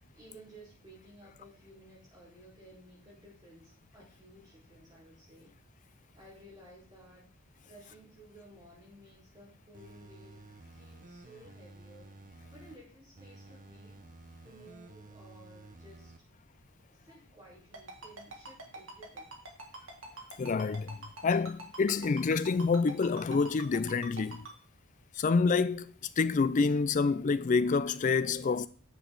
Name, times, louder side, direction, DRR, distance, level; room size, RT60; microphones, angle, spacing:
voice 1, 0.0-5.6 6.1-7.3 7.6-12.1 12.5-14.0 14.4-16.1 16.9-19.3, right 1 dB, 20° right, 4.3 m, -56 dB
sound 1, 9.7-12.8 13.2-16.2 16.6-16.7, right 2 dB, 35° right, 0.8 m, -53 dB
Ringtone, 17.7-24.5, right 2 dB, 65° right, 2.0 m, -44 dB
voice 2, 20.4-21.0 21.2-24.5 25.2-28.7, left 4 dB, 35° left, 0.3 m, -27 dB
9.4 x 6.3 x 3.8 m
head